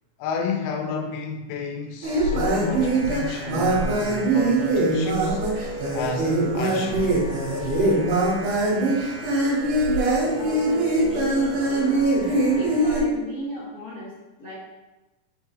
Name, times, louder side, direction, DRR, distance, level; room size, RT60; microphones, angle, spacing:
voice 1, 0.2-5.5 5.9-7.1, left 4 dB, 85° left, 2.8 m, -31 dB
sound 1, 2.0-13.0, right 2 dB, 55° right, 2.6 m, -22 dB
voice 2, 10.3-12.1 12.5-14.1 14.4-14.5, left 1 dB, 30° left, 2.1 m, -37 dB
6.3 x 4.6 x 4.8 m
omnidirectional pair, 5.0 m